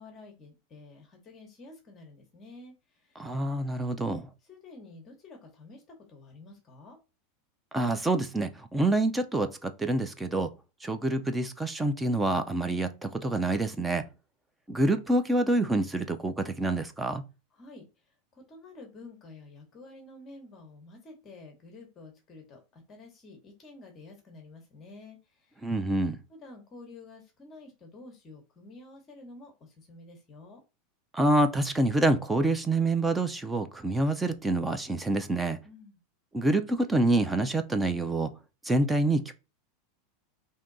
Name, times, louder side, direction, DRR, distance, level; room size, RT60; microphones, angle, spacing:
voice 1, 0.0-3.2 4.4-7.0 17.5-25.6 26.3-30.6 35.6-36.0, left 2 dB, 20° left, 0.8 m, -50 dB
voice 2, 3.2-4.3 7.7-10.5 10.8-14.1 14.7-17.2 25.6-26.2 31.1-35.6 36.3-38.3 38.6-39.3, right 2 dB, 5° right, 0.3 m, -27 dB
3.6 x 2.6 x 3.7 m
supercardioid pair, 170°, 0 cm